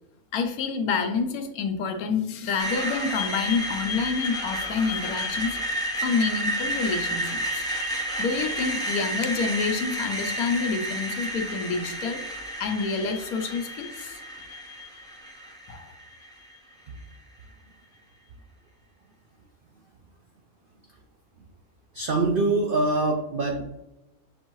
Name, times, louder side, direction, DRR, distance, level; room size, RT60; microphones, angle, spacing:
voice 1, 0.3-5.5 6.0-7.6 8.2-12.2 12.6-14.2 15.7-15.9, left 5 dB, 80° left, 6 dB, 1.1 m, -28 dB
Screech, 2.6-16.5, equal, 5° left, 0.7 m, -31 dB
voice 2, 21.9-23.6, right 2 dB, 75° right, 2 dB, 0.5 m, -24 dB
6.8 x 2.7 x 2.9 m, 0.94 s
omnidirectional pair, 1.5 m